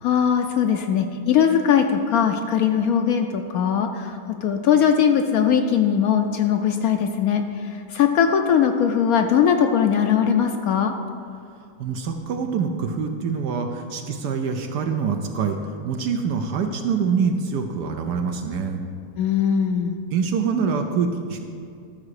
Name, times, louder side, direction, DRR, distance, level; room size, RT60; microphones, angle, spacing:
voice 1, 0.0-10.9 19.2-20.0, left 8 dB, 70° left, 5 dB, 0.9 m, -20 dB
voice 2, 11.8-18.8 20.1-21.4, right 5 dB, 70° right, 4 dB, 1.2 m, -25 dB
12.5 x 4.9 x 6.4 m, 2.3 s
omnidirectional pair, 1.9 m